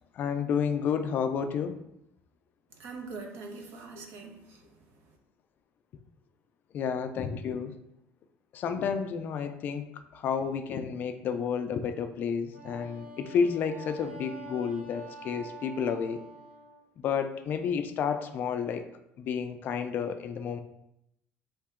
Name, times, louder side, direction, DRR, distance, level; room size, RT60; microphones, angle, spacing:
voice 1, 0.1-1.8 3.9-4.1 6.7-7.8 8.5-16.2 17.0-18.8 19.2-20.6, left 6 dB, 40° left, 8 dB, 0.3 m, -31 dB
voice 2, 2.7-4.8, right 4 dB, 60° right, 3 dB, 0.8 m, -43 dB
Wind instrument woodwind instrument, 12.5-16.8, right 2 dB, 30° right, 0.7 m, -46 dB
4.5 x 2.8 x 3.6 m, 0.82 s
cardioid pair, 160°, 5 cm